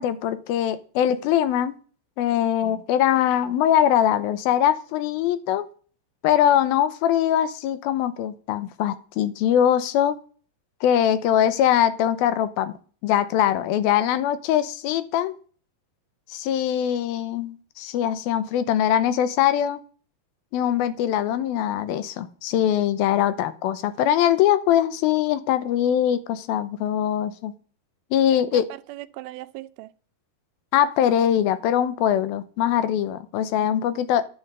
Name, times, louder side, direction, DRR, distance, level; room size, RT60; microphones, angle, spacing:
voice 1, 0.0-1.8 2.2-5.7 6.2-10.2 10.8-12.8 13.0-15.3 16.3-19.8 20.5-27.5 28.1-28.7 30.7-34.3, left 10 dB, 85° left, 2.7 m, -22 dB
voice 2, 28.3-29.9 33.6-34.0, right 17 dB, 90° right, 2.6 m, -40 dB
10.5 x 6.1 x 7.8 m
omnidirectional pair, 4.3 m